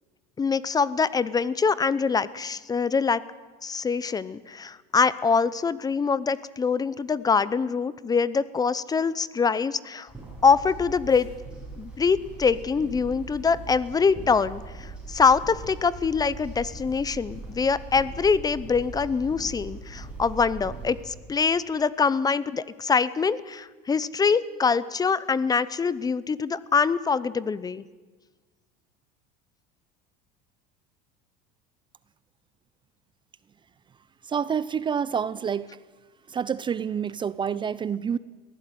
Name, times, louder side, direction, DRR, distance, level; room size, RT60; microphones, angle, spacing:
voice 1, 0.4-3.2 3.6-10.1 10.4-11.3 11.8-27.8, left 5 dB, 20° left, 18 dB, 0.7 m, -24 dB
sound 1, 10.1-21.1, right 3 dB, 5° right, 7.0 m, -40 dB
voice 2, 34.2-35.7 36.3-38.2, right 7 dB, 25° right, 18 dB, 0.6 m, -28 dB
21.5 x 15.5 x 9.3 m, 1.3 s
supercardioid pair, 120°, 20 cm